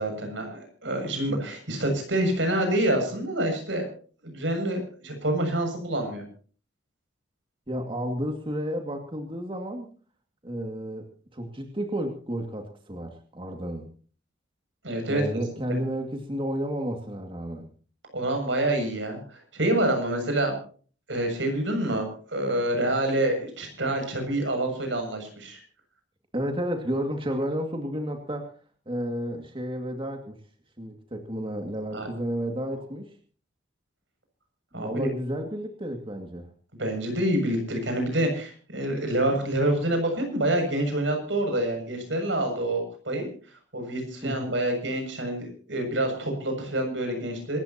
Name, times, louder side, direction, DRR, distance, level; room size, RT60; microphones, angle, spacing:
voice 1, 0.0-3.9 4.2-6.2 14.8-15.2 18.1-20.6 21.1-25.6 31.9-32.1 34.7-35.1 36.8-43.3 43.7-47.6, right 1 dB, 80° right, 5 dB, 7.1 m, -27 dB
voice 2, 7.7-9.9 10.4-11.1 11.3-13.8 15.1-17.7 26.3-28.5 28.9-30.4 30.8-33.1 34.7-36.5 44.2-44.6, equal, 30° right, 3 dB, 2.2 m, -31 dB
26.5 x 14.0 x 2.9 m, 0.42 s
head